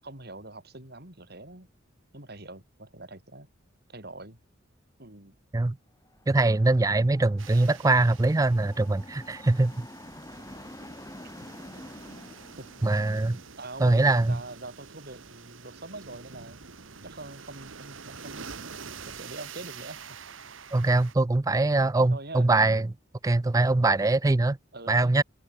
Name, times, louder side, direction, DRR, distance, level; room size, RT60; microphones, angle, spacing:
voice 1, 0.0-1.7 2.1-3.5 3.9-4.4 5.0-5.3 11.2-11.5 12.6-12.7 13.6-16.6 17.0-18.5 19.1-20.0 20.8-20.9 21.5-21.7 22.1-22.5 24.7-25.1, right 2 dB, 55° right, 6.6 m, -43 dB
sound 1, 6.1-13.5, left 1 dB, 15° left, 5.6 m, -48 dB
voice 2, 6.3-9.9 12.8-13.4 13.8-14.4 20.7-22.9 23.2-24.6 24.9-25.2, right 2 dB, 20° right, 0.4 m, -23 dB
sound 2, 7.4-21.1, right 5 dB, 90° right, 1.9 m, -46 dB
head